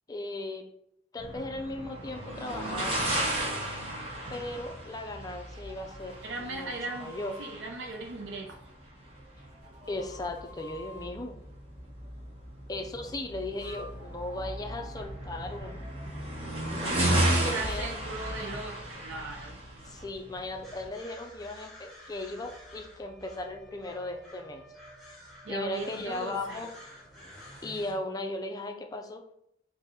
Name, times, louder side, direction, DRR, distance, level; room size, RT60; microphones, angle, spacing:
voice 1, 0.1-0.7 1.1-3.0 4.3-6.2 6.4-6.7 7.0-7.3 9.9-11.4 12.7-15.8 16.9-17.9 19.9-24.7 25.5-26.7 27.6-29.2, left 2 dB, 20° left, 5 dB, 0.4 m, -37 dB
sound 1, 1.2-20.9, right 1 dB, 30° right, 1.1 m, -34 dB
sound 2, 5.4-7.5 9.0-11.1 13.2-17.3, equal, 65° right, 1.4 m, -52 dB
voice 2, 6.2-7.1 7.4-8.6 16.8-19.6 25.4-26.6, right 3 dB, 85° right, 2 dB, 0.5 m, -38 dB
sound 3, 20.6-27.9, equal, ahead, 1.6 m, -50 dB
3.6 x 2.7 x 4.1 m, 0.74 s
head